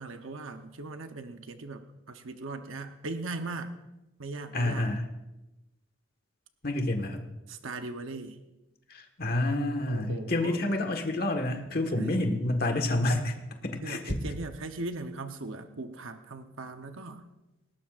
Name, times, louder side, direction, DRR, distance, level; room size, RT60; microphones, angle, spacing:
voice 1, 0.0-3.7 4.2-4.9 7.5-8.4 9.9-10.7 11.7-12.3 13.8-17.3, right 3 dB, 75° right, 7 dB, 0.9 m, -39 dB
voice 2, 4.5-5.1 6.6-7.2 8.9-13.3 13.6-14.1, left 1 dB, 45° left, 4 dB, 1.5 m, -28 dB
19.5 x 18.0 x 2.5 m, 1.0 s
head